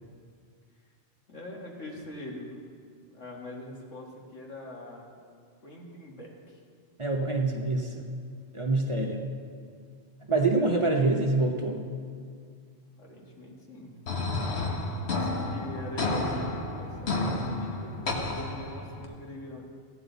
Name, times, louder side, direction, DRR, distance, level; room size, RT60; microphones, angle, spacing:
voice 1, 1.3-2.6 3.0-5.1 5.6-6.6 13.0-14.0 15.0-19.8, left 1 dB, 85° left, -2 dB, 2.1 m, -43 dB
voice 2, 7.0-8.2 8.5-9.3 10.3-11.8, right 2 dB, 30° right, 0 dB, 0.8 m, -26 dB
sound 1, 14.1-19.1, left 2 dB, 65° left, 1.4 m, -31 dB
15.5 x 9.5 x 4.0 m, 2.1 s
omnidirectional pair, 1.2 m